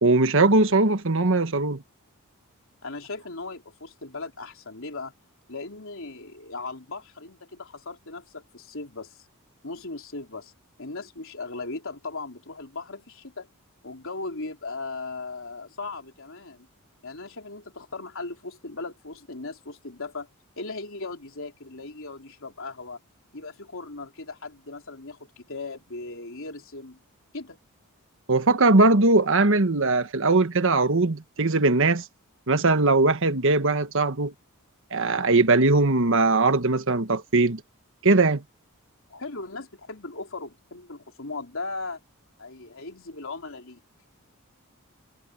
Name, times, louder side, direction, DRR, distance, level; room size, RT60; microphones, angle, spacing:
voice 1, 0.0-1.8 28.3-32.0 32.5-34.3 34.9-37.6 38.0-38.4, right 3 dB, 60° right, 1.4 m, -20 dB
voice 2, 2.8-5.1 5.5-9.3 9.6-10.5 10.8-13.5 13.8-16.7 17.0-20.3 20.6-23.0 23.3-27.0 27.3-27.6 39.1-42.0 42.4-43.8, left 3 dB, 60° left, 4.0 m, -38 dB
head